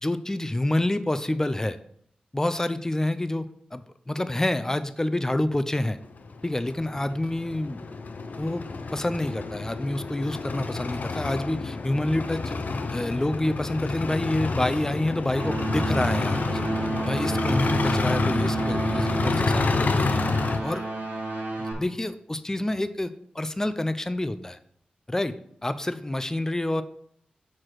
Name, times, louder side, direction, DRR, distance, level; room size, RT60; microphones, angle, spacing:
voice 1, 0.0-1.8 2.3-3.4 3.7-6.0 6.4-7.9 8.4-8.6 8.9-12.6 12.9-16.7 17.0-20.2 20.6-20.9 21.6-23.1 23.3-24.6 25.1-25.3 25.6-26.8, left 1 dB, 20° left, 11 dB, 0.5 m, -28 dB
sound 1, 6.0-20.6, left 4 dB, 65° left, 0.6 m, -29 dB
sound 2, 15.3-21.7, right 3 dB, 80° right, 2.0 m, -30 dB
5.9 x 4.8 x 4.7 m, 0.65 s
cardioid pair, 55°, 3 cm